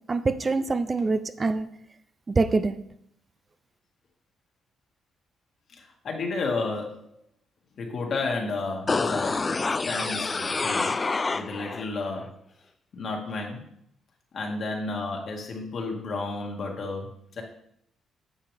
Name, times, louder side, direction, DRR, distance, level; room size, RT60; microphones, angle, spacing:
voice 1, 0.1-1.7 2.3-2.8, right 3 dB, 30° right, 11 dB, 0.5 m, -25 dB
voice 2, 5.7-7.1 7.8-9.5 9.9-11.0 11.3-12.3 12.9-13.6 14.3-17.1 17.4-17.5, left 3 dB, 55° left, 1 dB, 2.0 m, -32 dB
sound 1, 8.9-11.9 12.2-12.3, left 3 dB, 25° left, 0.4 m, -27 dB
9.9 x 6.8 x 3.5 m, 0.71 s
cardioid pair, 90°, 0 cm